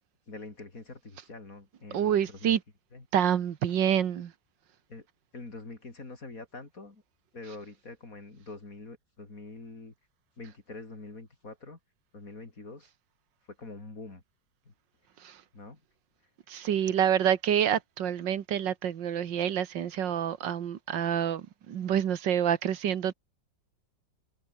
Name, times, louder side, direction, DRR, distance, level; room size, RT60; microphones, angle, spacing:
voice 1, 0.3-2.6 2.9-3.1 4.9-5.1 5.3-7.0 7.3-9.9 10.4-11.8 12.1-12.9 13.5-14.2 14.6-14.7 15.5-15.8 16.9-17.0, left 3 dB, 50° left, 4.1 m, -45 dB
voice 2, 1.9-2.6 3.1-4.3 15.2-15.4 16.5-23.1, right 9 dB, 85° right, 1.9 m, -27 dB
omnidirectional pair, 1.9 m